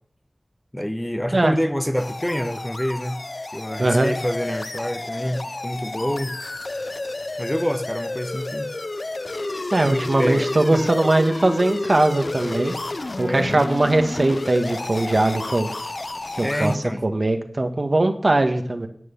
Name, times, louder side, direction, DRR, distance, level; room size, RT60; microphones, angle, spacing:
voice 1, 0.7-3.3 3.5-6.4 7.4-8.7 9.8-10.8 13.3-14.0 16.4-17.1, equal, 10° left, 0.9 m, -27 dB
sound 1, 1.9-16.8, left 2 dB, 55° left, 0.5 m, -31 dB
voice 2, 3.8-4.1 9.7-12.7 13.2-15.7 16.4-16.7 17.0-18.9, right 2 dB, 55° right, 1.4 m, -20 dB
11.0 x 8.6 x 7.0 m
wide cardioid pair, 60°, 0 cm